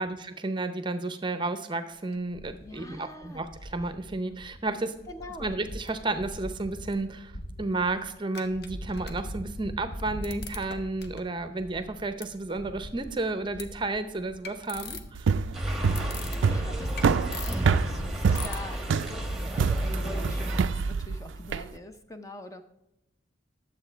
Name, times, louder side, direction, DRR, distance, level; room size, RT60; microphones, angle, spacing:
voice 1, 0.0-5.0 5.4-7.3 7.6-15.3, right 2 dB, 25° right, 10 dB, 0.6 m, -32 dB
sound 1, 2.1-3.0 3.2-4.7 5.0-19.9, left 1 dB, 60° left, 0.9 m, -41 dB
voice 2, 2.6-3.4 5.1-5.5 15.9-22.6, left 1 dB, 15° left, 7 dB, 0.6 m, -45 dB
sound 2, 15.1-21.7, right 5 dB, 80° right, 0.4 m, -26 dB
sound 3, 15.5-20.6, right 1 dB, ahead, 1.1 m, -32 dB
10.5 x 7.4 x 4.4 m, 0.92 s
head